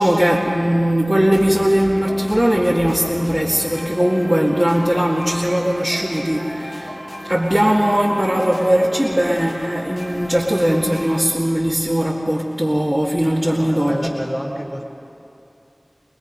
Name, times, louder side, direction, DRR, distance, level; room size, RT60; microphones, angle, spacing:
voice 1, 0.0-6.9 7.2-14.1, equal, 10° right, -6 dB, 2.2 m, -19 dB
sound 1, 1.1-11.2, equal, 50° left, 5.8 m, -34 dB
voice 2, 13.5-14.8, equal, 5° left, 0 dB, 3.3 m, -28 dB
25.0 x 20.5 x 5.4 m, 2.7 s
wide cardioid pair, 45°, 0 cm